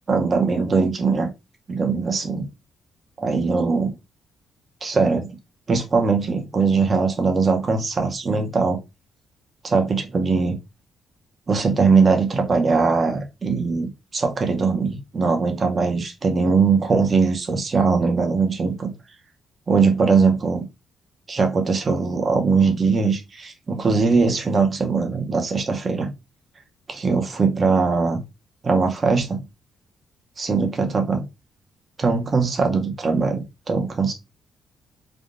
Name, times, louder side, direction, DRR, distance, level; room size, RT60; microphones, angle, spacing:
voice 1, 0.1-1.3 1.7-2.5 3.2-3.9 4.8-5.3 5.7-8.8 9.6-10.6 11.5-18.9 19.7-20.6 21.3-26.1 26.9-28.2 28.6-29.4 30.4-31.2 32.0-34.1, right 4 dB, 30° right, 0.7 m, -21 dB
3.5 x 2.2 x 2.5 m
cardioid pair, 125°, 0 cm